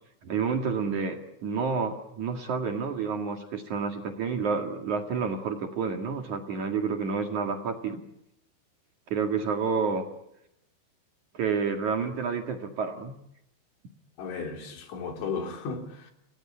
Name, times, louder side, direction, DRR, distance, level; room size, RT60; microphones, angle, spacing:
voice 1, 0.2-8.0 9.1-10.0 11.3-13.1, right 5 dB, 50° right, 2.6 m, -29 dB
voice 2, 14.2-16.1, left 5 dB, 80° left, 5.9 m, -35 dB
29.5 x 19.5 x 9.8 m
omnidirectional pair, 5.4 m